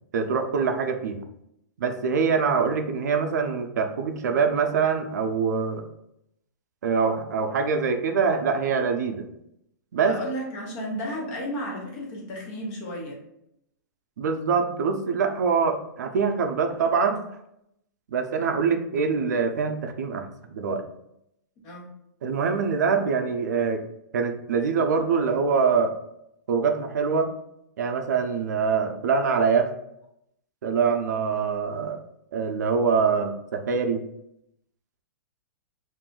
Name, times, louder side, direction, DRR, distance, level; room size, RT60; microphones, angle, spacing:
voice 1, 0.1-1.2 1.8-5.8 6.8-9.3 9.9-10.2 14.2-17.2 18.1-20.8 22.2-23.8 24.1-25.9 26.5-27.3 27.8-29.7 30.6-32.0 32.3-34.0, right 5 dB, 70° right, 6 dB, 0.5 m, -24 dB
voice 2, 10.0-13.2 21.6-21.9, equal, 25° left, -2 dB, 0.7 m, -33 dB
2.6 x 2.4 x 3.6 m, 0.79 s
supercardioid pair, 180°, 9 cm